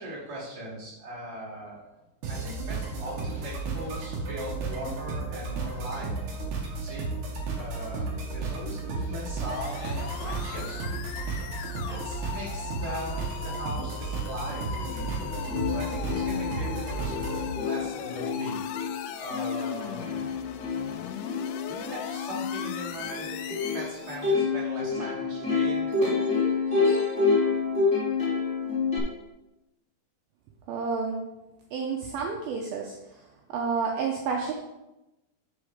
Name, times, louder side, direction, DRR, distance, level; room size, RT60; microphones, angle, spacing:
voice 1, 0.0-1.8 2.3-6.4 6.8-7.0 7.5-11.4 11.9-15.1 15.7-18.6 19.2-20.5 20.9-26.4, right 1 dB, 25° right, -7 dB, 2.8 m, -40 dB
sound 1, 2.2-17.5, right 3 dB, 60° right, 2.2 m, -33 dB
sound 2, 9.5-24.3, left 9 dB, 85° left, 2.3 m, -39 dB
Plucked string instrument, 15.1-15.2 15.5-29.0, left 4 dB, ahead, 2.2 m, -28 dB
voice 2, 30.7-31.2 31.7-32.9 33.5-34.5, right 5 dB, 80° right, 1 dB, 2.2 m, -29 dB
8.5 x 6.2 x 4.9 m, 0.97 s
omnidirectional pair, 5.3 m